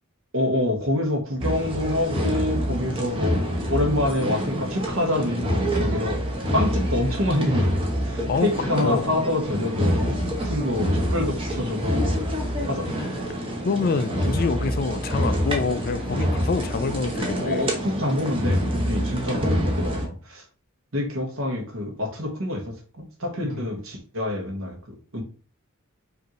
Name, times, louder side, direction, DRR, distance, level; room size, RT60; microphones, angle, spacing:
voice 1, 0.3-3.4 3.7-6.2 6.5-10.2 10.4-12.3 12.7-12.9 17.4-20.4 20.9-24.8 25.1-25.2, left 1 dB, 65° right, 1.3 m, -26 dB
sound 1, 1.4-20.1, equal, 25° right, 0.8 m, -26 dB
voice 2, 8.3-9.1 13.6-17.7 23.4-23.7, left 4 dB, 45° left, 0.3 m, -26 dB
5.1 x 2.7 x 3.0 m
head